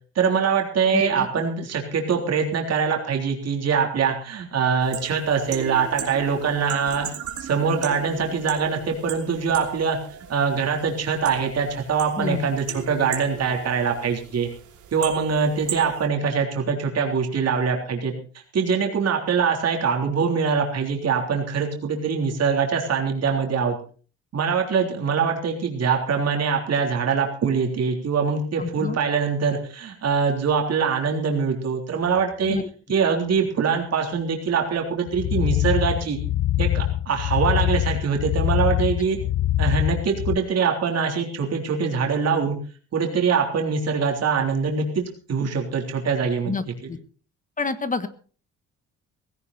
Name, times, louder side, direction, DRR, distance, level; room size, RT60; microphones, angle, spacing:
voice 1, 0.2-7.1 7.4-10.0 10.3-14.5 14.9-18.1 18.5-23.8 24.3-32.6 32.9-36.2 36.6-39.2 39.6-42.6 42.9-45.0 45.3-46.5, right 6 dB, 55° right, 2 dB, 3.6 m, -23 dB
voice 2, 0.9-1.3 12.1-12.5 28.6-29.0 32.5-32.7 46.5-46.6 46.9-47.0 47.6-48.1, left 4 dB, 25° left, 12 dB, 1.4 m, -28 dB
sound 1, 4.8-16.1, right 8 dB, 80° right, 3.1 m, -37 dB
sound 2, 35.1-40.4, left 13 dB, 70° left, 0.8 m, -24 dB
16.5 x 16.0 x 4.2 m, 0.40 s
cardioid pair, 90°, 30 cm